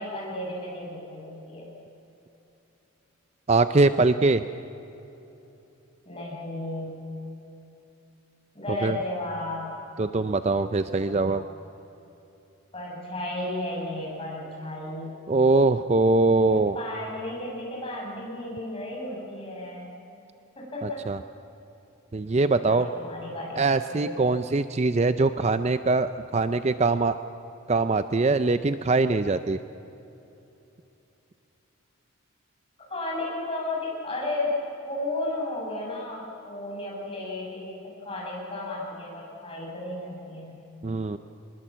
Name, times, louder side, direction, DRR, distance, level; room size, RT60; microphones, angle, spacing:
voice 1, 0.0-1.7 6.1-7.1 8.5-9.7 11.0-11.4 12.7-15.1 16.4-19.9 20.6-21.0 22.6-23.6 23.9-24.3 32.9-34.6 34.9-40.6, left 2 dB, 25° left, -4 dB, 6.9 m, -34 dB
voice 2, 3.5-4.4 8.8-9.0 10.0-11.4 15.3-16.8 20.8-21.2 22.1-22.9 23.6-27.2 27.7-29.6 40.8-41.2, right 3 dB, 30° right, 11 dB, 0.4 m, -22 dB
24.5 x 21.0 x 7.5 m, 3.0 s
head